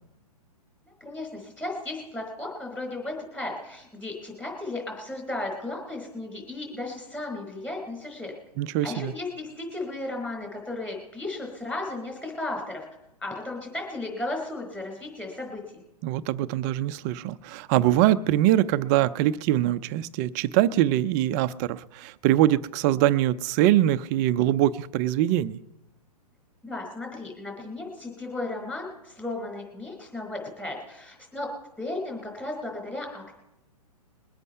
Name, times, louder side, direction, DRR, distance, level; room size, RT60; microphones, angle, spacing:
voice 1, 0.9-8.3 8.8-12.9 13.2-15.8 26.6-31.5 31.8-33.3, left 2 dB, 5° left, 4.2 m, -35 dB
voice 2, 8.6-9.1 16.0-25.6, right 13 dB, 30° right, 0.4 m, -23 dB
22.0 x 8.2 x 5.6 m
hypercardioid pair, 135°, 20 cm